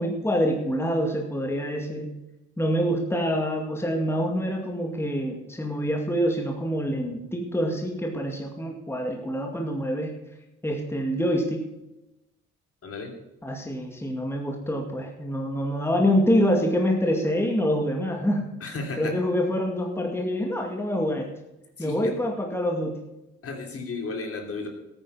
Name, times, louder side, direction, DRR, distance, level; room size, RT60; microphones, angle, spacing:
voice 1, 0.0-2.1 2.6-10.1 10.6-11.7 13.4-18.5 19.0-21.3 21.8-23.0, equal, 10° left, 2 dB, 2.1 m, -26 dB
voice 2, 12.8-13.1 18.6-19.1 21.8-22.1 23.4-24.7, left 3 dB, 50° left, 2 dB, 3.1 m, -33 dB
13.0 x 9.3 x 5.7 m, 0.95 s
cardioid pair, 90°, 30 cm